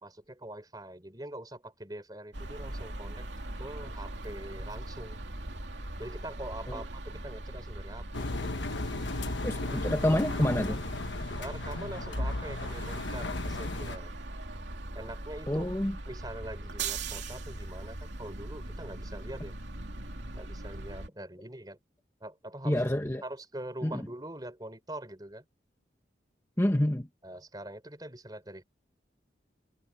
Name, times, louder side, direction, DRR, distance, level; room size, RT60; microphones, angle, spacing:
voice 1, 0.0-3.3 3.6-5.2 6.0-8.5 11.4-14.2 14.9-15.7 16.1-19.5 20.3-21.8 22.2-22.8 23.2-25.4 27.2-28.6, right 1 dB, 20° right, 4.2 m, -43 dB
sound 1, 2.3-21.1, right 2 dB, 85° right, 2.7 m, -40 dB
Engine, 8.1-14.0, left 2 dB, 90° left, 1.2 m, -35 dB
voice 2, 9.4-10.8 15.5-16.0 17.2-17.3 22.6-23.2 23.8-24.0 26.6-27.1, left 1 dB, 15° left, 1.3 m, -28 dB
head